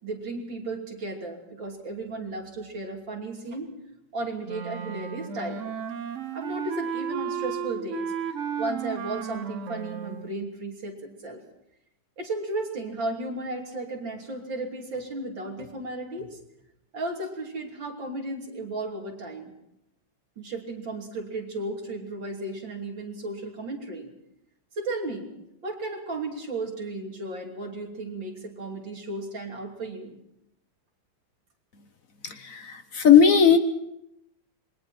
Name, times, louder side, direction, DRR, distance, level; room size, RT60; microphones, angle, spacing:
voice 1, 0.0-3.7 4.1-5.7 6.3-11.4 12.2-16.4 16.9-19.5 20.4-24.1 24.7-25.3 25.6-30.2, right 2 dB, 80° right, 1 dB, 3.8 m, -34 dB
Wind instrument woodwind instrument, 4.4-10.3, right 7 dB, 50° right, 1.1 m, -33 dB
voice 2, 32.2-33.6, left 7 dB, 50° left, 8 dB, 1.4 m, -17 dB
27.0 x 21.5 x 4.4 m, 0.83 s
omnidirectional pair, 2.0 m